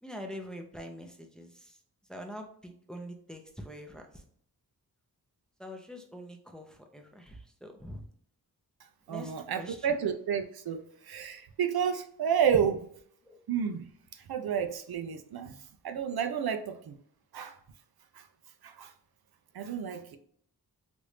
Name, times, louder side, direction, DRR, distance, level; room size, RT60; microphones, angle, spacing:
voice 1, 0.0-1.8 2.1-4.2 5.6-8.0 9.1-10.0 13.2-13.4, equal, ahead, 0.6 m, -44 dB
voice 2, 9.1-12.9 13.5-13.9 14.1-15.6 15.8-17.0 17.3-17.6 18.1-18.3 18.6-18.9 19.5-20.2, right 7 dB, 70° right, 0.5 m, -31 dB
3.2 x 2.6 x 3.1 m
wide cardioid pair, 75°, 39 cm